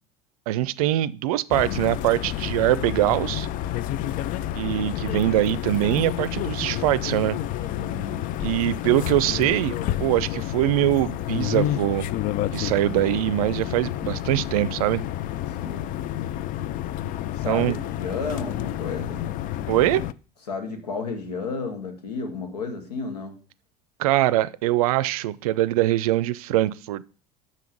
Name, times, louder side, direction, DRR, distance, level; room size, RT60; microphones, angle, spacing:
voice 1, 0.5-3.5 4.5-7.4 8.4-9.7 10.0-12.1 12.5-15.0 17.5-17.8 19.7-20.0 24.0-27.0, right 14 dB, 65° right, 0.5 m, -23 dB
sound 1, 1.5-20.1, left 12 dB, 45° left, 0.4 m, -29 dB
voice 2, 7.8-8.2 15.5-15.9 17.3-19.3 20.5-23.4, left 4 dB, 80° left, 1.7 m, -32 dB
6.4 x 5.7 x 5.0 m
figure-of-eight pair, 70°, 20 cm